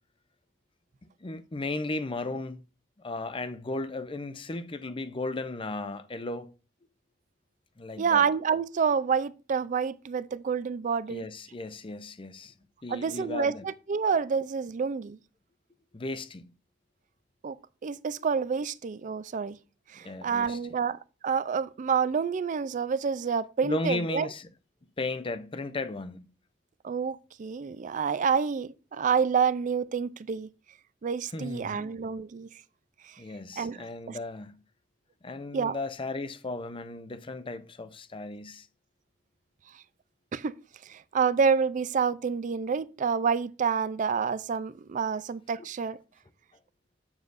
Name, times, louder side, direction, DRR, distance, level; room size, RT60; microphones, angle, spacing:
voice 1, 1.2-2.6 3.0-6.5 7.8-8.2 11.1-12.5 12.8-13.7 15.9-16.5 20.0-20.6 23.6-24.5 25.0-26.3 31.3-31.9 33.2-34.6 35.2-38.7, left 2 dB, 30° left, 0.6 m, -35 dB
voice 2, 8.0-11.3 12.9-15.2 17.4-17.6 17.8-19.6 19.9-21.0 21.2-24.3 26.8-30.5 31.0-32.5 33.6-34.2 35.5-35.8 40.3-40.5 40.9-46.0, right 6 dB, 45° right, 0.4 m, -28 dB
7.9 x 7.2 x 2.5 m
head